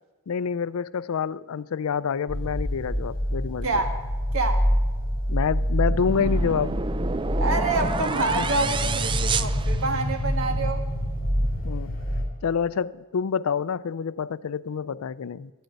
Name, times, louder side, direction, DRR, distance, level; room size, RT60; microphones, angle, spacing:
voice 1, 0.3-3.7 5.3-6.8 8.4-8.5 10.5-10.7 11.6-11.9 12.4-15.5, left 6 dB, 90° left, 0.4 m, -27 dB
sound 1, 2.3-12.2, equal, 45° left, 3.9 m, -26 dB
voice 2, 3.6-3.9 4.3-4.6 7.4-10.8, right 3 dB, 80° right, 1.7 m, -27 dB
sound 2, 5.8-10.4, right 4 dB, 25° right, 0.4 m, -30 dB
12.0 x 9.3 x 9.1 m
head